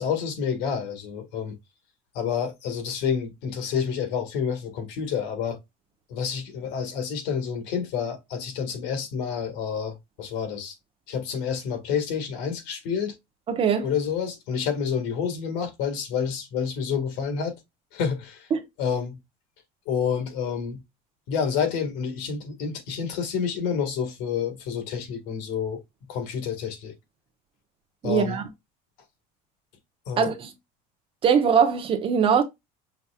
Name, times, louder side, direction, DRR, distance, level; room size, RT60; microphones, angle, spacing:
voice 1, 0.0-1.5 2.1-5.6 6.1-10.8 11.1-13.2 13.8-17.6 17.9-18.5 18.8-19.2 19.9-20.8 21.3-25.8 26.1-26.9 28.0-28.4 30.1-30.3, left 7 dB, 70° left, 1.7 m, -29 dB
voice 2, 13.5-13.9 18.5-18.6 28.0-28.4 30.2-30.5 31.2-32.4, right 7 dB, 30° right, 1.0 m, -21 dB
5.7 x 3.2 x 2.3 m
cardioid pair, 160°, 18 cm